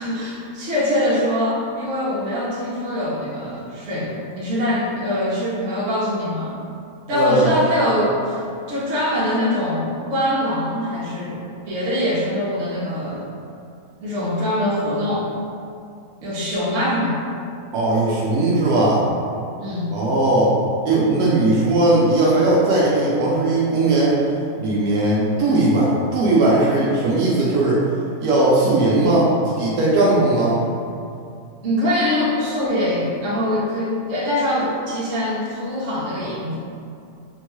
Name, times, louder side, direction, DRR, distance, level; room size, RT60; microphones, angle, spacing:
voice 1, 0.0-6.5 7.1-8.4 8.7-13.3 14.0-15.3 16.2-17.2 19.6-19.9 31.6-36.6, left 1 dB, 60° right, -7 dB, 1.1 m, -23 dB
voice 2, 7.1-7.6 17.7-19.0 19.9-20.5 20.8-24.2 24.6-27.8 28.2-30.6, right 2 dB, 85° right, -6 dB, 1.1 m, -18 dB
3.7 x 2.2 x 3.0 m, 2.4 s
omnidirectional pair, 1.6 m